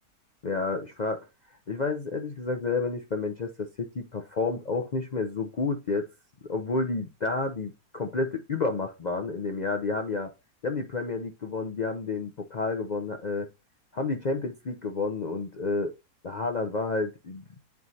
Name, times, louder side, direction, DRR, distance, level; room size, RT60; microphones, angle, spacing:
voice 1, 0.4-1.3 1.7-6.1 6.5-10.3 10.6-13.5 13.9-15.9 16.2-17.4, left 3 dB, 80° left, 0.4 m, -30 dB
9.3 x 4.6 x 2.7 m
omnidirectional pair, 1.6 m